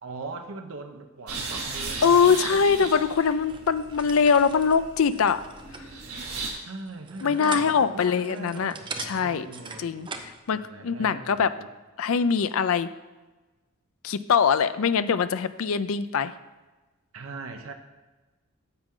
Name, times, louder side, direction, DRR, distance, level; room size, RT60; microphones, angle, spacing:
voice 1, 0.0-2.9 6.6-8.8 9.1-9.9 10.5-11.7 17.1-17.7, right 3 dB, 65° right, 5 dB, 0.8 m, -40 dB
sound 1, 1.3-6.5, right 4 dB, 90° right, 2.2 m, -37 dB
voice 2, 2.0-5.4 7.2-8.7 9.0-9.5 9.8-11.5 12.0-12.9 14.0-16.3, left 6 dB, 65° left, 13 dB, 0.4 m, -23 dB
sound 2, 2.5-10.4, right 4 dB, 20° right, 0.6 m, -42 dB
9.8 x 7.4 x 3.7 m, 1.2 s
head